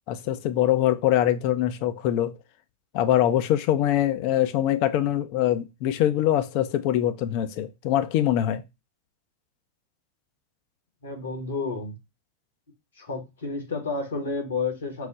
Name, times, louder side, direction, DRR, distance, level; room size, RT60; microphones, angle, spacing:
voice 1, 0.1-2.3 2.9-8.6, left 12 dB, 45° left, 0.5 m, -23 dB
voice 2, 11.0-12.0 13.0-15.1, left 4 dB, 70° left, 1.3 m, -30 dB
4.7 x 2.0 x 3.8 m
figure-of-eight pair, 90°, 0 cm